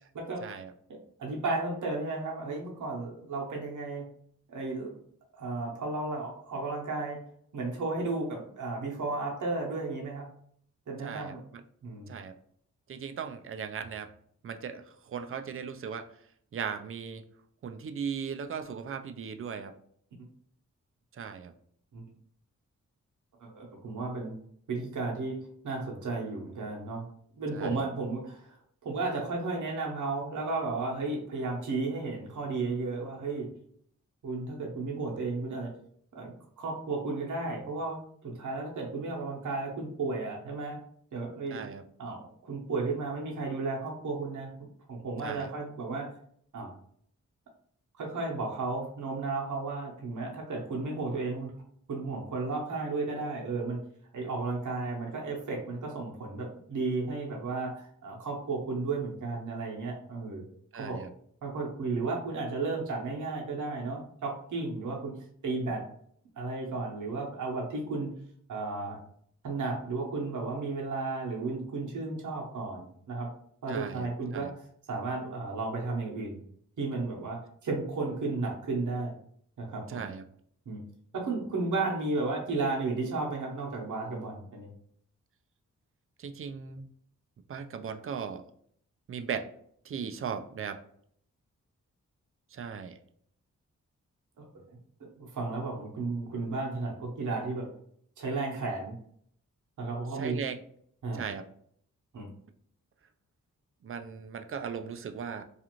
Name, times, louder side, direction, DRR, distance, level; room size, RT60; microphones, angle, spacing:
voice 1, 0.4-0.7 11.0-11.6 12.1-12.3 12.9-14.1 14.4-16.1 16.5-17.2 17.6-19.7 21.1-21.5 27.5-27.9 41.5-41.8 45.2-45.5 60.7-61.1 73.7-74.5 79.9-80.2 86.2-86.9 87.5-88.4 89.1-89.5 89.8-90.8 92.5-93.0 100.1-100.6 101.1-101.4 103.8-105.4, right 6 dB, 45° right, 8 dB, 0.4 m, -37 dB
voice 2, 1.2-4.0 4.5-4.9 5.3-7.2 7.5-10.3 10.9-11.4 11.8-12.1 21.9-22.0 23.4-24.3 24.7-25.4 25.6-27.1 27.4-28.6 28.8-33.5 34.2-35.7 36.1-40.8 41.1-41.6 42.0-44.5 44.9-46.1 46.5-46.7 48.0-51.5 51.9-53.8 54.1-60.5 60.8-61.0 61.4-65.1 65.4-65.8 66.4-68.1 68.5-69.0 69.4-73.3 73.6-74.5 74.9-76.4 76.8-79.1 79.6-80.1 80.7-80.8 81.1-84.7 94.4-94.6 95.2-97.7 98.2-99.0 99.8-100.4 101.0-101.2 102.1-102.3, right 3 dB, 70° right, -1 dB, 0.9 m, -33 dB
2.5 x 2.4 x 2.9 m, 0.64 s
cardioid pair, 50°, 32 cm